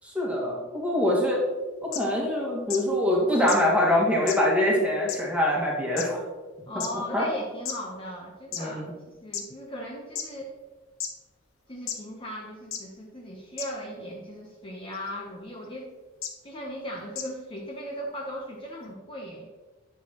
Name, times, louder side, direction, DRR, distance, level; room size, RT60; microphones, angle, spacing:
voice 1, 0.0-1.4 1.8-6.2 6.9-7.3 8.6-8.8, left 1 dB, 5° right, -3 dB, 1.8 m, -24 dB
sound 1, 1.9-2.0 2.7-2.8 3.5-3.6 4.3-4.4 5.1-5.2 6.0-6.1 6.8-6.9 7.7-7.8 8.5-8.6 9.3-9.4 10.2-10.3 11.0-11.1 11.9-12.0 12.7-12.8 13.6-13.7 14.9-15.1 16.2-16.3 17.2-17.3, left 8 dB, 75° left, 0.8 m, -32 dB
voice 2, 6.7-8.9 9.2-10.5 11.7-15.9 16.4-19.5, equal, 25° left, -1 dB, 0.8 m, -38 dB
10.0 x 6.2 x 2.9 m, 1.3 s
head